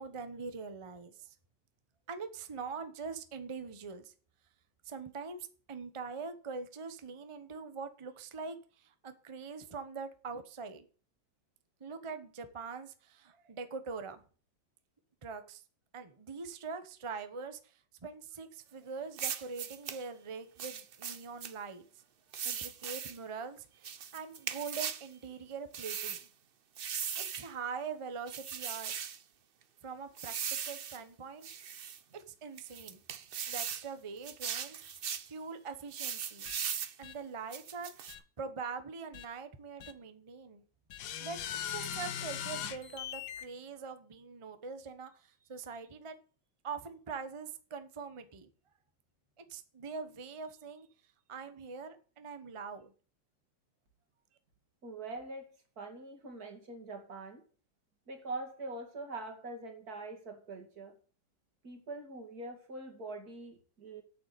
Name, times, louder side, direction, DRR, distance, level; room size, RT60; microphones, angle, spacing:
voice 1, 0.0-1.4 2.1-4.1 4.8-10.8 11.8-14.2 15.2-15.6 15.9-22.0 22.4-26.3 27.2-28.9 29.8-31.5 32.1-33.0 33.5-36.5 37.0-40.6 41.2-46.2 46.6-48.5 49.4-50.9 51.3-52.9, right 5 dB, 25° right, 0.7 m, -43 dB
sound 1, 19.2-20.0 20.6-21.5 22.3-23.2 23.8-25.0 25.7-26.2 26.8-27.5 28.3-29.2 30.2-31.0 31.4-32.0 32.6-33.9 34.2-35.3 35.9-36.9 37.5-38.1, right 8 dB, 85° right, 0.5 m, -39 dB
sound 2, 36.5-36.6 37.0-37.1 38.1-38.2 39.1-39.3 39.8-39.9 40.9-43.5, left 10 dB, 75° left, 1.5 m, -40 dB
voice 2, 54.8-57.4 58.1-60.9 61.6-64.0, right 2 dB, 50° right, 2.7 m, -43 dB
8.5 x 6.9 x 8.3 m
omnidirectional pair, 2.0 m